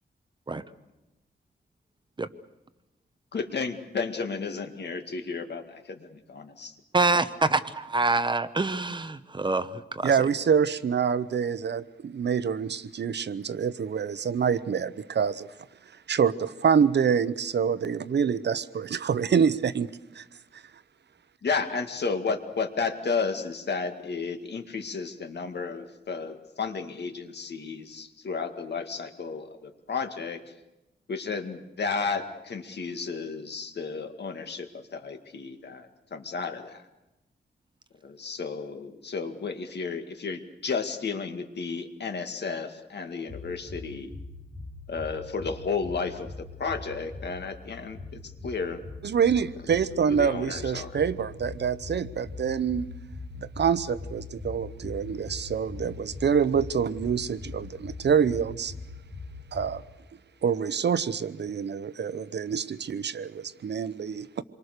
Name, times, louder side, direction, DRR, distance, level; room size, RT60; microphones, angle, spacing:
voice 1, 3.3-5.6 21.4-30.4 31.1-36.8 38.0-44.1 44.9-48.0 48.4-48.8 50.1-51.0, left 4 dB, 65° left, 7 dB, 2.1 m, -32 dB
voice 2, 6.9-10.1, right 3 dB, 25° right, 11 dB, 1.0 m, -26 dB
voice 3, 10.0-15.5 16.1-20.2 49.0-52.9 53.4-58.7 59.5-59.8 60.4-64.4, right 7 dB, 65° right, 15 dB, 0.9 m, -26 dB
sound 1, 43.3-59.7, left 3 dB, 25° left, 7.0 m, -42 dB
27.5 x 23.5 x 6.7 m, 0.99 s
wide cardioid pair, 135°, 19 cm